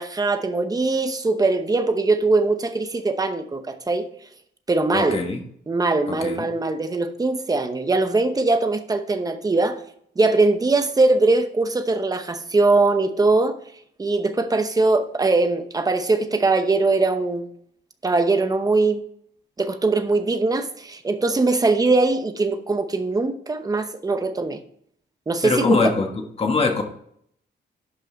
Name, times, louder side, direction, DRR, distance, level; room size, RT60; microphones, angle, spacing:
voice 1, 0.0-4.1 4.7-5.2 5.7-9.8 10.2-13.6 14.0-17.5 18.0-19.0 19.6-24.6 25.3-25.8, right 3 dB, 20° right, 9 dB, 0.8 m, -21 dB
voice 2, 4.9-5.4 6.1-6.4 25.4-26.1 26.4-26.8, left 4 dB, 30° left, 3 dB, 1.4 m, -22 dB
11.5 x 5.5 x 3.9 m, 0.66 s
wide cardioid pair, 175°, 19 cm